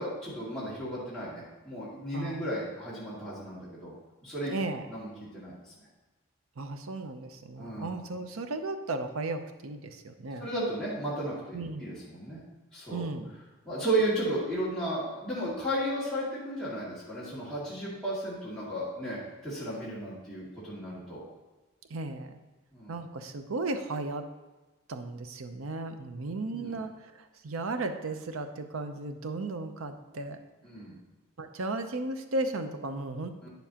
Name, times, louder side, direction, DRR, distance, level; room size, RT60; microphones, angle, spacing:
voice 1, 0.0-3.9 4.2-4.5 4.9-5.6 7.6-7.9 10.4-12.4 12.7-13.0 13.6-21.2 22.7-23.0 26.5-26.8 30.6-31.0 33.4-33.5, right 1 dB, ahead, -10 dB, 2.3 m, -34 dB
voice 2, 2.1-2.5 4.5-4.9 6.6-10.5 11.5-11.9 12.9-13.3 21.9-22.4 22.9-24.3 24.9-30.4 31.4-33.5, right 2 dB, 90° right, 8 dB, 0.7 m, -35 dB
9.2 x 7.0 x 2.9 m, 1.1 s
head